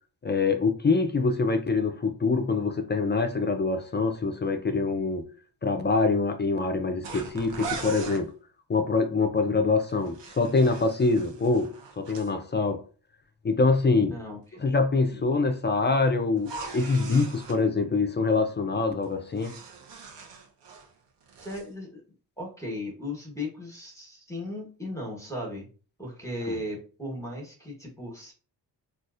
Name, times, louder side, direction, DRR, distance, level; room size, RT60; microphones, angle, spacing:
voice 1, 0.2-5.3 5.6-8.3 8.7-12.8 13.4-14.2 14.6-19.5, left 3 dB, 25° left, 0.4 m, -25 dB
sound 1, 7.0-8.2 9.9-12.3 16.4-17.6 19.0-20.9 21.2-21.7, right 4 dB, 75° right, 0.8 m, -40 dB
voice 2, 14.1-14.6 15.0-15.2 21.4-22.0 22.4-25.7 26.0-28.3, left 1 dB, 5° left, 1.1 m, -36 dB
3.9 x 2.4 x 2.4 m
cardioid pair, 80°, 43 cm